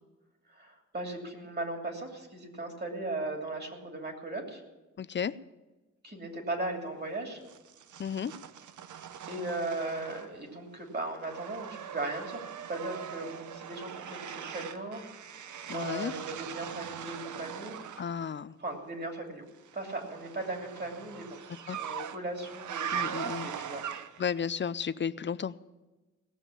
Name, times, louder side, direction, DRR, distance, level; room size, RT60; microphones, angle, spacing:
voice 1, 0.5-4.6 6.0-7.4 9.3-15.0 15.7-17.8 18.6-19.4 19.7-21.4 21.7-23.8, right 2 dB, 35° right, 3 dB, 2.9 m, -37 dB
voice 2, 5.0-5.3 8.0-8.3 15.7-16.1 18.0-18.5 21.7-21.8 22.9-23.5 24.2-25.6, left 7 dB, 40° left, 16 dB, 0.5 m, -33 dB
sound 1, 7.5-10.5 10.8-18.1 19.7-24.4, right 9 dB, 75° right, 0.7 m, -41 dB
17.5 x 7.2 x 8.5 m, 1.1 s
wide cardioid pair, 110°, 30 cm